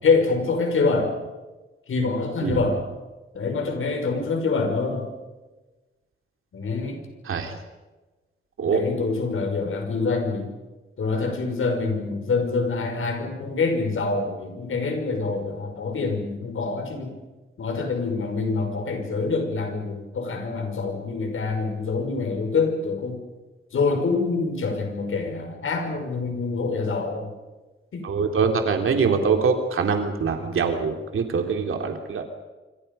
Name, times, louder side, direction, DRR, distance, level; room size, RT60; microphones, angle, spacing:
voice 1, 0.0-1.1 1.9-2.8 3.3-5.1 6.5-7.0 8.7-10.5 11.0-17.1 17.6-23.2 23.7-27.3 27.9-28.1, left 4 dB, 75° left, 4 dB, 5.8 m, -25 dB
voice 2, 28.0-32.2, right 5 dB, 80° right, 4 dB, 3.0 m, -23 dB
27.0 x 26.0 x 5.5 m, 1.2 s
wide cardioid pair, 130°, 21 cm